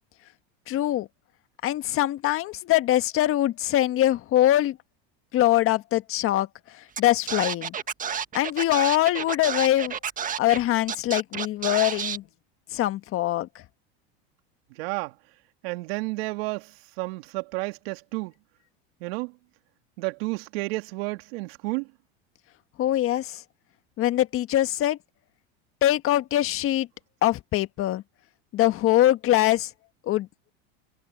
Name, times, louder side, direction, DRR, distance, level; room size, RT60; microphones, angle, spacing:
voice 1, 0.7-1.1 1.6-4.8 5.3-6.5 7.0-7.7 8.3-9.9 10.4-12.2 12.7-13.5 22.8-23.4 24.0-25.0 25.8-26.9 27.2-28.0 28.5-29.7 30.1-30.5, left 14 dB, 45° left, 1.6 m, -23 dB
Scratching (performance technique), 7.0-7.1 7.3-10.6 10.9-12.2, right 7 dB, 25° right, 1.6 m, -30 dB
voice 2, 14.8-15.1 15.6-18.3 19.0-19.3 20.0-21.9, right 23 dB, 70° right, 2.7 m, -31 dB
supercardioid pair, 115°, 31 cm